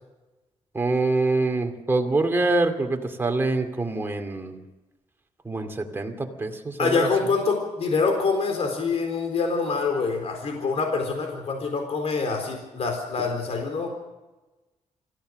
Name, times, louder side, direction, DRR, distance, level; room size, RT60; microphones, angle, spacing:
voice 1, 0.7-4.6 5.4-7.1, right 2 dB, 20° right, 3 dB, 2.4 m, -25 dB
voice 2, 6.8-13.9, left 4 dB, 55° left, 3 dB, 4.0 m, -25 dB
26.0 x 15.0 x 6.5 m, 1.1 s
wide cardioid pair, 145°, 12 cm